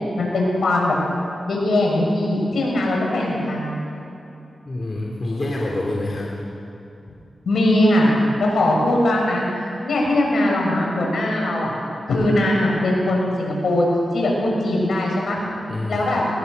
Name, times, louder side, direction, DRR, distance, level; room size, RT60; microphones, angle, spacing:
voice 1, 0.2-0.9 1.4-3.8 7.4-9.4 9.8-11.7 12.1-13.9 14.1-15.4 15.9-16.2, left 1 dB, 75° left, -2 dB, 6.5 m, -20 dB
voice 2, 4.7-6.3 15.7-16.0, left 2 dB, 50° left, -2 dB, 3.2 m, -26 dB
20.5 x 20.5 x 6.8 m, 2.7 s
cardioid pair, 45°, 0 cm